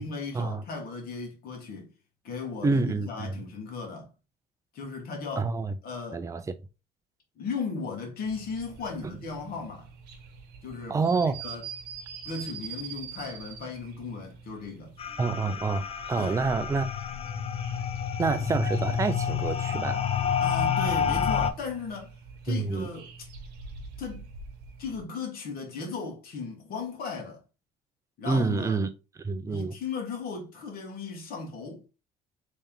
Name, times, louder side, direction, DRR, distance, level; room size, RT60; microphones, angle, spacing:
voice 1, 0.0-1.9 2.2-4.1 4.7-5.5 5.8-6.3 7.3-9.9 10.6-11.6 12.2-14.9 16.2-16.4 20.4-22.1 22.4-23.1 24.0-24.2 24.8-27.4 28.2-28.8 29.5-31.9, left 4 dB, 60° left, 1.6 m, -36 dB
voice 2, 2.6-3.4 5.4-5.7 6.1-6.5 10.9-11.4 15.2-16.9 18.2-20.0 22.5-22.9 28.2-28.9 29.2-29.8, right 4 dB, 20° right, 0.5 m, -27 dB
sound 1, 8.2-25.0, right 6 dB, 80° right, 1.0 m, -46 dB
sound 2, 15.0-21.5, left 7 dB, 35° left, 0.5 m, -29 dB
3.3 x 3.1 x 3.6 m
cardioid pair, 110°, 17 cm